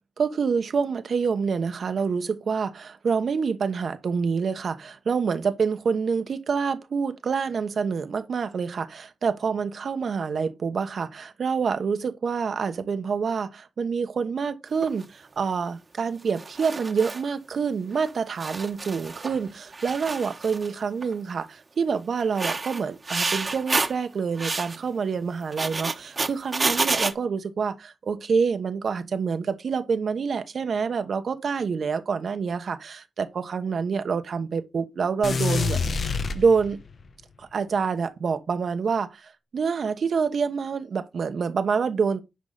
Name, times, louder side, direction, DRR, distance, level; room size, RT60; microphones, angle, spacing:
voice 1, 0.2-35.9 36.3-36.8 37.4-42.3, right 5 dB, 70° right, 1.1 m, -27 dB
sound 1, 14.8-15.0 16.3-17.2 18.0-18.1 18.4-19.4 19.7-20.7 21.0-21.3 22.2-24.0 24.4-24.8 25.4-27.1, right 3 dB, 40° right, 1.2 m, -29 dB
sound 2, 35.2-37.0, left 4 dB, 65° left, 1.0 m, -27 dB
10.5 x 4.8 x 3.9 m
cardioid pair, 75°, 0 cm